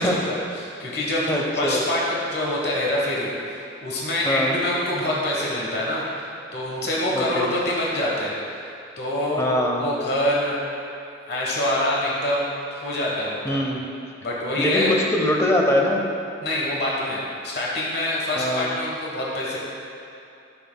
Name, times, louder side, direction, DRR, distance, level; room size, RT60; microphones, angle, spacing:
voice 1, 0.0-1.2 1.6-6.0 6.5-8.4 9.0-9.5 9.8-10.6 11.3-13.6 14.2-15.0 16.4-19.6, left 1 dB, 60° left, -4 dB, 1.2 m, -25 dB
voice 2, 1.3-1.8 4.2-4.6 7.1-7.5 9.4-9.9 13.4-13.9 14.6-16.0 18.3-18.7, left 1 dB, 15° left, 0 dB, 0.7 m, -23 dB
11.0 x 6.3 x 2.3 m, 2.8 s
head